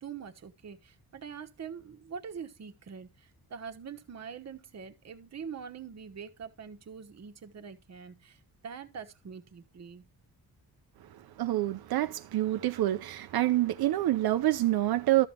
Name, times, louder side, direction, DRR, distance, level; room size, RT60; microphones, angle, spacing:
voice 1, 0.0-10.1, right 6 dB, 45° right, 1.2 m, -44 dB
voice 2, 11.4-15.3, right 15 dB, 90° right, 0.7 m, -27 dB
12.5 x 7.2 x 2.9 m
wide cardioid pair, 135°, 36 cm